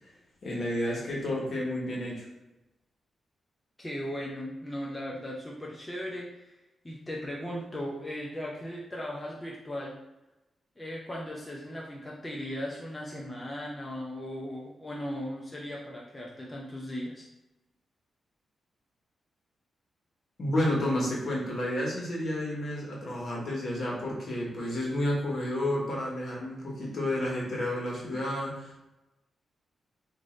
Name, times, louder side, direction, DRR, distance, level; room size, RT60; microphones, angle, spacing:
voice 1, 0.4-2.2 20.4-28.9, left 1 dB, 55° left, -3 dB, 1.2 m, -31 dB
voice 2, 3.8-6.5 6.8-9.9 10.8-17.2, equal, 15° left, -3 dB, 0.5 m, -37 dB
3.1 x 2.6 x 3.7 m, 0.99 s
cardioid pair, 110°, 0 cm